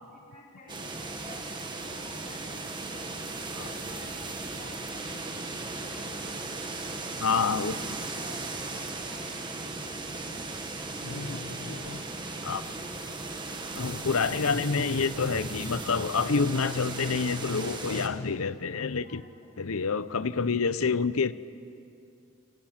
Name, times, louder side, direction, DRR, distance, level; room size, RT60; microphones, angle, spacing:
voice 1, 0.0-1.5 1.8-5.3 5.7-7.5 8.0-10.4 10.9-12.2 18.6-19.7, left 1 dB, 40° left, -3 dB, 5.4 m, -53 dB
sound 1, 0.7-18.1, right 3 dB, 20° right, 1.8 m, -37 dB
voice 2, 7.2-7.8 11.0-12.0 12.4-12.7 13.8-19.2 19.6-21.3, left 5 dB, 75° left, 15 dB, 0.8 m, -28 dB
28.0 x 27.0 x 5.9 m, 2.5 s
head